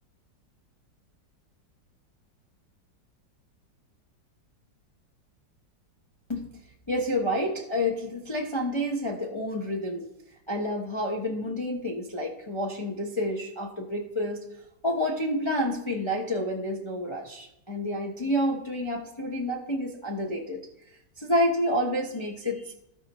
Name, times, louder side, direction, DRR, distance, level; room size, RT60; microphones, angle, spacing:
voice 1, 6.9-10.0 10.5-14.4 14.8-20.7 21.2-22.7, left 1 dB, 20° left, -1 dB, 0.8 m, -29 dB
16.0 x 5.4 x 3.1 m, 0.80 s
omnidirectional pair, 2.0 m